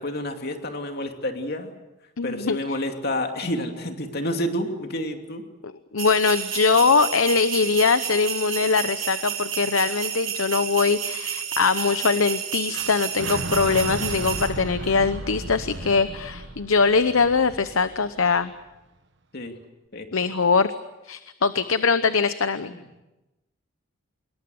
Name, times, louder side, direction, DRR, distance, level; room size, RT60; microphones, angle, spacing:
voice 1, 0.0-1.7 2.2-5.4 19.3-19.6 19.9-20.1 22.7-22.8, left 1 dB, 50° left, 4 dB, 2.8 m, -29 dB
voice 2, 2.2-2.8 5.6-18.5 20.1-20.7 21.0-22.7, left 4 dB, 80° left, 12 dB, 0.9 m, -22 dB
sound 1, 6.0-14.5, right 10 dB, 85° right, 5.9 m, -31 dB
Fire / Explosion, 12.7-18.6, right 2 dB, 60° right, 1.4 m, -35 dB
26.0 x 22.0 x 7.9 m, 1.0 s
head